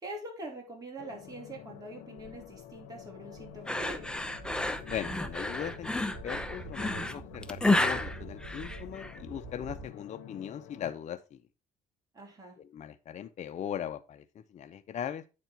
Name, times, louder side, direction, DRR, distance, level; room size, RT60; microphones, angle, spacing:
voice 1, 0.0-4.1 12.1-12.6, right 2 dB, 20° right, -1 dB, 3.6 m, -44 dB
sound 1, 1.0-10.9, left 11 dB, 90° left, 0.7 m, -49 dB
Walk footsteps, 2.2-9.9, right 4 dB, 45° right, 3.0 m, -47 dB
sound 2, 3.7-9.2, left 2 dB, 5° left, 0.7 m, -31 dB
voice 2, 4.9-11.4 12.6-15.4, left 9 dB, 45° left, 10 dB, 0.6 m, -39 dB
9.1 x 4.3 x 4.4 m, 0.30 s
cardioid pair, 110°, 17 cm